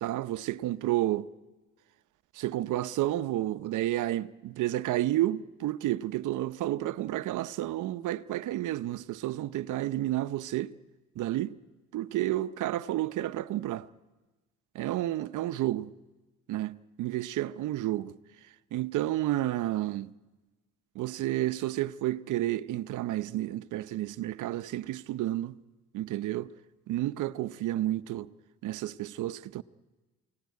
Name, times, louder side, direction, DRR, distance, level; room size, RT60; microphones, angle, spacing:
voice 1, 0.0-1.3 2.3-10.7 11.2-11.6 11.9-13.9 14.7-15.9 16.5-18.2 18.7-20.1 21.0-25.5 25.9-26.5 26.9-28.3 28.6-29.6, right 14 dB, 80° right, 0.8 m, -31 dB
28.5 x 18.0 x 9.5 m
cardioid pair, 90°, 30 cm